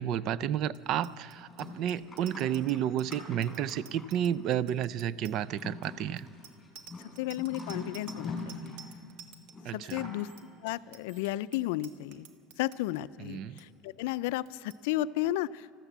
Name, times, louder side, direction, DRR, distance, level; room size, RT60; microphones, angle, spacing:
voice 1, 0.0-6.3 9.6-10.1 13.2-13.5, right 10 dB, 45° right, 20 dB, 0.4 m, -31 dB
Bicycle bell, 0.7-13.0 13.3-13.6 13.9-14.2 14.4-14.8, right 6 dB, 65° right, 1.1 m, -52 dB
sound 1, 1.4-4.4 5.4-8.9 9.5-10.4, left 3 dB, 10° left, 4.3 m, -43 dB
voice 2, 7.2-8.7 9.7-10.3 10.6-12.3 12.6-15.7, left 15 dB, 85° left, 17 dB, 0.4 m, -33 dB
13.5 x 13.5 x 8.0 m, 2.5 s
cardioid pair, 150°, 0 cm